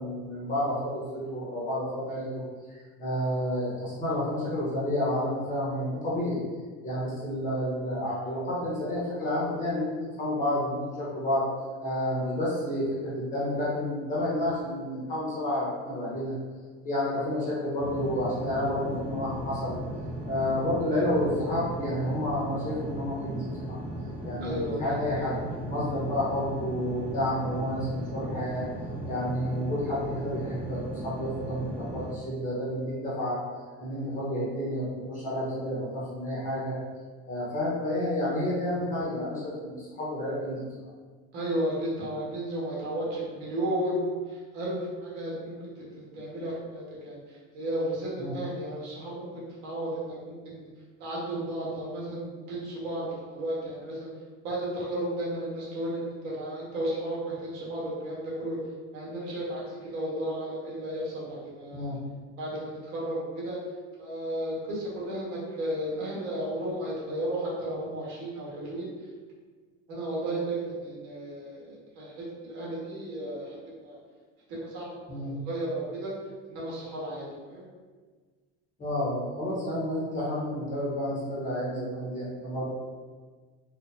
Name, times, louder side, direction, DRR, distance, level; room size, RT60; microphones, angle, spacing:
voice 1, 0.0-2.4 2.7-6.4 6.8-9.9 10.2-11.4 11.8-16.3 16.8-19.8 20.3-23.8 24.2-28.6 29.0-33.4 33.8-36.7 37.3-40.6 48.2-48.3 61.7-62.0 75.1-75.4 78.8-82.7, left 1 dB, 25° left, -8 dB, 1.0 m, -30 dB
sound 1, 17.8-32.1, equal, 35° right, 0.9 m, -37 dB
voice 2, 24.4-24.8 41.3-44.8 45.0-45.5 45.9-47.2 47.5-50.7 51.0-54.1 54.4-58.6 58.9-61.9 62.4-63.6 64.0-68.9 69.9-72.1 72.4-74.0 74.5-75.2 75.5-76.1 76.5-77.7, right 1 dB, 70° right, -6 dB, 1.5 m, -33 dB
4.3 x 2.5 x 2.6 m, 1.5 s
cardioid pair, 175°, 33 cm